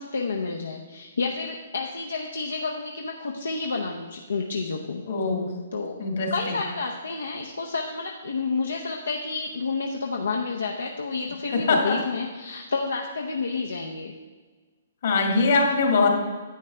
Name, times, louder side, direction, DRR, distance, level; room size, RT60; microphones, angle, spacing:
voice 1, 0.0-5.0 5.7-6.0 6.3-14.1, left 4 dB, 85° left, 1 dB, 0.7 m, -30 dB
voice 2, 5.1-5.5 6.0-6.6 11.5-12.0 15.0-16.1, left 3 dB, 65° left, 1 dB, 1.9 m, -22 dB
10.0 x 7.6 x 3.4 m, 1.4 s
hypercardioid pair, 135°, 0 cm